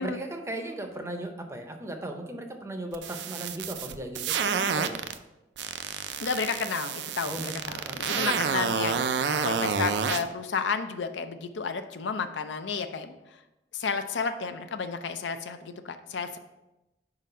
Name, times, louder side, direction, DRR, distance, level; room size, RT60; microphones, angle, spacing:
voice 1, 0.0-5.0 7.3-8.5, right 1 dB, 15° right, 4 dB, 0.6 m, -37 dB
sound 1, 2.9-5.2 5.6-10.2, right 6 dB, 70° right, 0.4 m, -29 dB
voice 2, 6.2-13.1 13.7-16.4, left 5 dB, 80° left, 8 dB, 0.5 m, -32 dB
5.0 x 3.9 x 5.4 m, 0.96 s
head